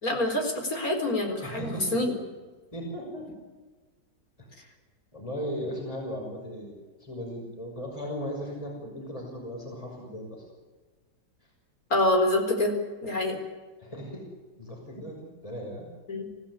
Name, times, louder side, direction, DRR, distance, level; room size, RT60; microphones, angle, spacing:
voice 1, 0.0-2.1 11.9-13.4 16.1-16.3, left 1 dB, 55° left, 3 dB, 4.8 m, -26 dB
voice 2, 1.4-1.9 2.7-3.3 4.4-4.5 5.1-10.4 13.8-14.2 14.6-15.9, equal, 20° left, 0 dB, 6.0 m, -37 dB
25.5 x 16.5 x 9.8 m, 1.3 s
omnidirectional pair, 1.9 m